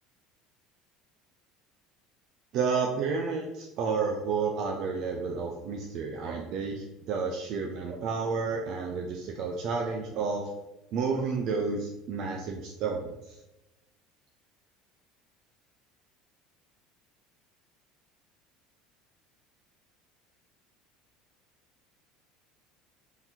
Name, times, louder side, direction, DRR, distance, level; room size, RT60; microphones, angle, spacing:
voice 1, 2.5-10.5 10.9-13.4, right 5 dB, 55° right, 1 dB, 0.5 m, -31 dB
3.8 x 2.8 x 4.3 m, 0.99 s
cardioid pair, 130°, 0 cm